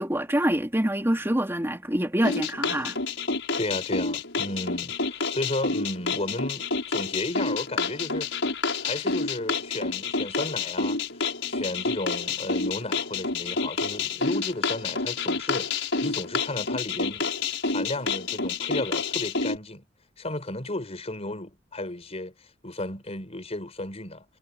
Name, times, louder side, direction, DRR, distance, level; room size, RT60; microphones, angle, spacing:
voice 1, 0.0-3.0, right 1 dB, 15° right, 3.1 m, -25 dB
sound 1, 2.2-19.6, left 4 dB, 70° left, 7.4 m, -29 dB
voice 2, 3.6-8.3 8.8-11.0 11.5-17.3 17.6-19.8 20.2-24.2, left 1 dB, 35° left, 4.9 m, -34 dB
head